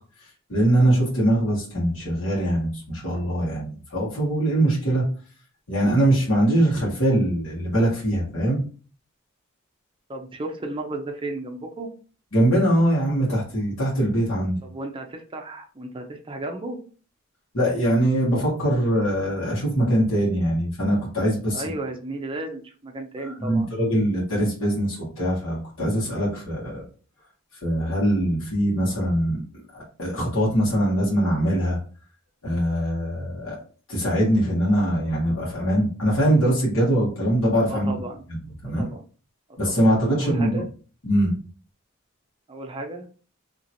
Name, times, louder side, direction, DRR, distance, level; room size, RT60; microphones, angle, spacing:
voice 1, 0.5-5.0 5.7-8.6 12.3-14.6 17.5-21.7 23.3-26.8 27.6-29.4 30.0-31.8 32.4-33.6 33.9-37.9 38.3-38.4 38.6-38.8 39.6-40.6 41.0-41.3, right 1 dB, 70° left, -6 dB, 1.5 m, -22 dB
voice 2, 10.1-11.9 14.6-16.8 21.5-23.7 37.7-38.2 38.6-39.0 39.6-39.9 40.1-40.7 42.5-43.1, right 2 dB, 25° right, 3 dB, 0.5 m, -34 dB
2.9 x 2.9 x 2.7 m, 0.39 s
head